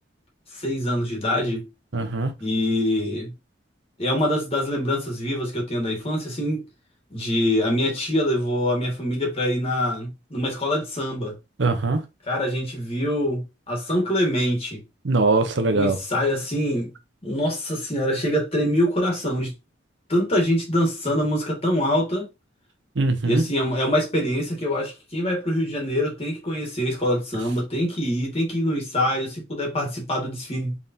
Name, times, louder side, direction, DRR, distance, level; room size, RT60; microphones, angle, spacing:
voice 1, 0.5-1.7 2.4-3.3 4.0-6.6 7.1-11.3 12.2-14.8 15.7-16.9 17.2-19.5 20.1-22.3 23.2-30.8, equal, 30° left, 1.7 m, -24 dB
voice 2, 1.9-2.3 11.6-12.0 15.0-16.0 23.0-23.4, right 3 dB, 70° right, 0.8 m, -21 dB
4.0 x 3.5 x 2.7 m
head